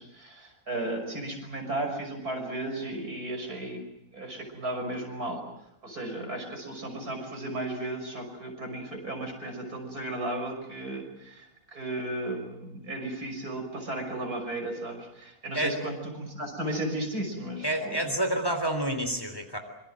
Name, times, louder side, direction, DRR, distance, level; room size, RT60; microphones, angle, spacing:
voice 1, 0.0-3.8 4.1-5.4 5.8-18.0, right 1 dB, 75° right, 3 dB, 6.6 m, -35 dB
voice 2, 17.6-19.6, right 1 dB, 15° left, 6 dB, 3.6 m, -28 dB
26.0 x 25.0 x 7.7 m, 0.82 s
omnidirectional pair, 1.6 m